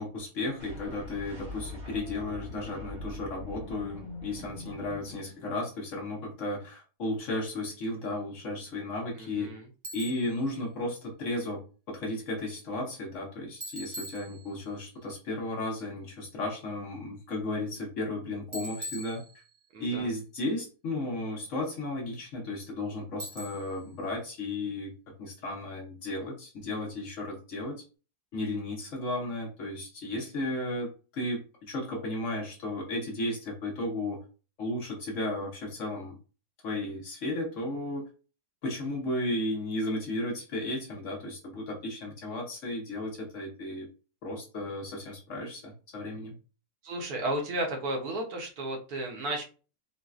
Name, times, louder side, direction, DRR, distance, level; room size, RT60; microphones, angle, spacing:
voice 1, 0.0-9.5 9.9-19.2 19.8-24.9 25.2-27.8 28.3-34.2 34.6-36.2 36.6-38.1 38.6-43.9 44.2-46.4, left 1 dB, 60° left, 0 dB, 0.9 m, -34 dB
sound 1, 0.6-5.7, left 1 dB, 90° right, 2.0 m, -43 dB
voice 2, 9.2-9.7 19.7-20.1 46.8-49.4, right 1 dB, 70° right, 1 dB, 1.2 m, -33 dB
Bicycle, 9.8-10.4 13.6-14.8 18.5-19.8 23.2-23.9, equal, 45° right, 0.6 m, -42 dB
3.9 x 2.1 x 2.3 m, 0.35 s
omnidirectional pair, 1.7 m